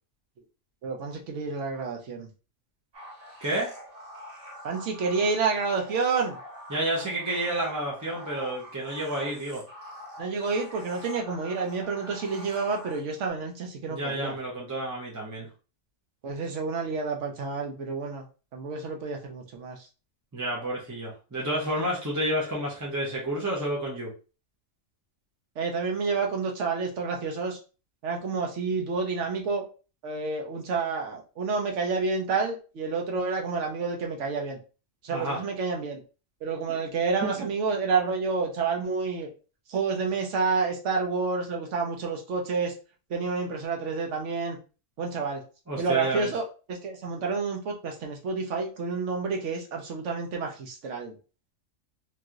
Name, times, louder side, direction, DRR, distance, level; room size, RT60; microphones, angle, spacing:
voice 1, 0.8-2.3 4.6-6.4 10.2-14.3 16.2-18.2 18.5-19.8 25.6-27.6 28.0-29.7 30.0-34.6 35.0-36.0 36.4-39.3 39.7-42.7 43.1-44.6 45.0-45.4 45.8-51.1, right 4 dB, 65° right, 2 dB, 1.1 m, -29 dB
sound 1, 2.9-13.3, equal, 80° right, 1.5 m, -45 dB
voice 2, 6.7-9.6 13.9-15.5 20.3-24.1 35.1-35.4 36.7-36.8 37.2-37.3 45.7-46.3, right 1 dB, 20° right, -4 dB, 0.6 m, -30 dB
3.0 x 2.8 x 2.4 m, 0.34 s
omnidirectional pair, 1.4 m